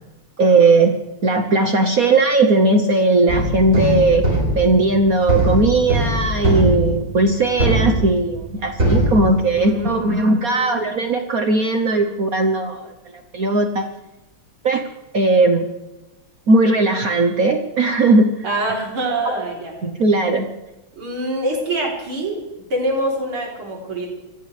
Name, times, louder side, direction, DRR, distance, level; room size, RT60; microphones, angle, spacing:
voice 1, 0.4-12.9 13.3-13.9 14.6-14.8 15.1-15.7 16.5-18.3 19.2-19.4 19.8-20.5, right 2 dB, 50° right, 5 dB, 1.2 m, -17 dB
sound 1, 3.3-8.5 8.8-9.9, right 1 dB, 35° right, 4.5 m, -21 dB
voice 2, 9.5-10.9 18.4-19.7 21.0-22.4 22.7-24.1, right 1 dB, 75° right, -2 dB, 4.4 m, -25 dB
25.5 x 16.5 x 3.3 m, 1.0 s
omnidirectional pair, 2.4 m